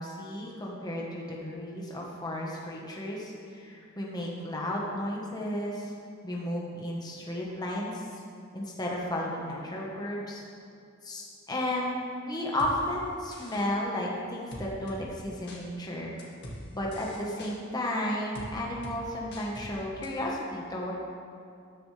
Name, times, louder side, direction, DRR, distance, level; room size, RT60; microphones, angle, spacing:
voice 1, 0.0-5.9 6.2-8.0 8.5-10.4 11.0-16.1 16.7-20.9, left 1 dB, 20° left, -3 dB, 1.2 m, -33 dB
sound 1, 12.6-12.7 13.3-13.7 14.5-15.0 15.5-15.6 16.2-16.6 16.9-17.5 18.4-18.5 18.8-19.0 19.3-19.7 20.0-20.1, left 1 dB, 60° left, 1.9 m, -42 dB
13.0 x 10.0 x 3.3 m, 2.4 s
head